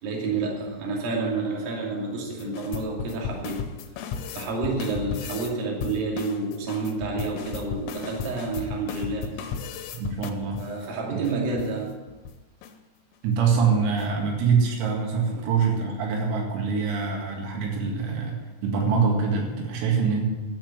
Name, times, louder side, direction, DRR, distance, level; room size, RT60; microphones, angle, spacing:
voice 1, 0.0-3.6 4.3-9.3 10.6-11.9 15.4-15.5, right 3 dB, 50° right, -2 dB, 3.9 m, -29 dB
sound 1, 2.4-5.5 5.8-10.8 11.2-11.3 11.6-11.7 12.1-12.3 12.6-12.7 13.1-13.4 13.8-14.3, left 6 dB, 80° left, 3.6 m, -35 dB
voice 2, 9.9-10.6 11.1-11.2 13.2-20.3, right 5 dB, 80° right, 0 dB, 4.7 m, -24 dB
13.0 x 7.7 x 8.0 m, 1.2 s
omnidirectional pair, 6.0 m